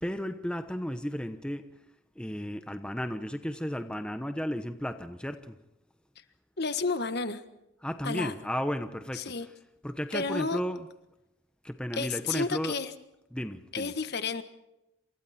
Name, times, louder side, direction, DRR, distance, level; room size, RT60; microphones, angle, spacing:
voice 1, 0.0-1.7 2.2-5.6 7.8-9.5 9.8-10.9 11.6-12.7 13.3-13.9, equal, 5° left, 1.0 m, -34 dB
voice 2, 6.6-7.4 8.0-8.3 9.1-9.5 10.1-10.6 12.0-12.9 13.7-14.4, left 4 dB, 50° left, 1.5 m, -31 dB
29.0 x 28.0 x 4.4 m
head